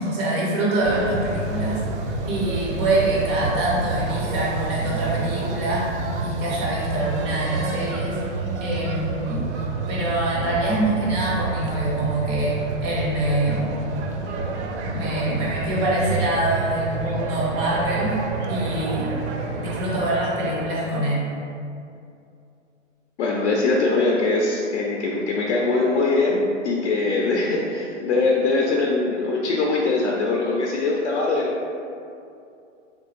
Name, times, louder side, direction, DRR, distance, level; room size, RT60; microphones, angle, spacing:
voice 1, 0.0-1.8 2.2-5.9 6.2-8.2 8.6-9.5 9.9-13.6 14.9-18.2 18.5-19.1 19.4-21.2, right 1 dB, 15° right, -5 dB, 0.4 m, -25 dB
sound 1, 0.8-20.7, right 3 dB, 65° right, 0.5 m, -29 dB
voice 2, 23.2-31.5, left 3 dB, 65° left, -3 dB, 0.6 m, -22 dB
3.4 x 2.9 x 3.0 m, 2.6 s
hypercardioid pair, 135°, 37 cm